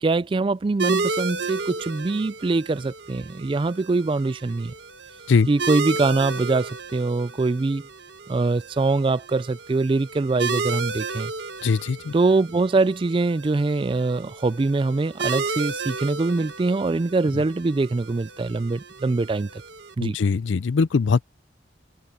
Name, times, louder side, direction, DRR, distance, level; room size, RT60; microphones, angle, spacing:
voice 1, 0.0-4.7 5.5-7.8 8.3-11.3 12.1-19.5 20.0-20.2, right 3 dB, 25° right, 0.3 m, -23 dB
sound 1, 0.8-19.9, right 4 dB, 65° right, 1.2 m, -33 dB
voice 2, 11.6-12.1 20.0-21.2, left 5 dB, 75° left, 0.4 m, -21 dB
head